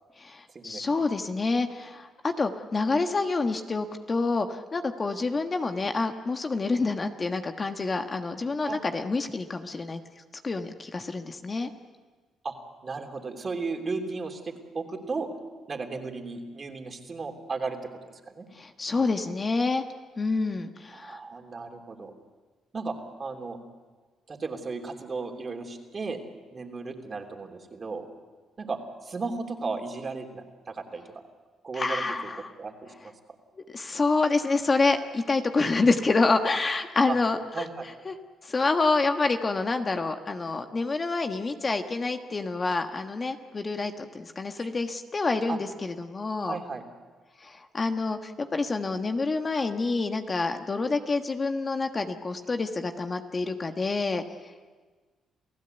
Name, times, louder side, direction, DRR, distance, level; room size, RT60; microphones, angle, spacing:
voice 1, 0.2-10.0 10.4-11.7 18.5-19.8 20.2-21.2 31.7-32.5 33.7-37.7 38.0-38.1 38.4-46.6 47.4-54.2, left 3 dB, 30° left, 6 dB, 1.4 m, -27 dB
voice 2, 12.8-15.3 15.7-18.5 20.9-22.1 22.7-23.6 24.3-26.2 26.5-28.1 28.6-31.2 31.6-32.0 32.6-33.1 37.1-37.2 37.5-37.9 44.6-44.7 45.5-45.6 46.4-46.8, right 4 dB, 35° right, 4 dB, 3.2 m, -35 dB
29.0 x 16.0 x 8.1 m, 1.4 s
cardioid pair, 90°, 0 cm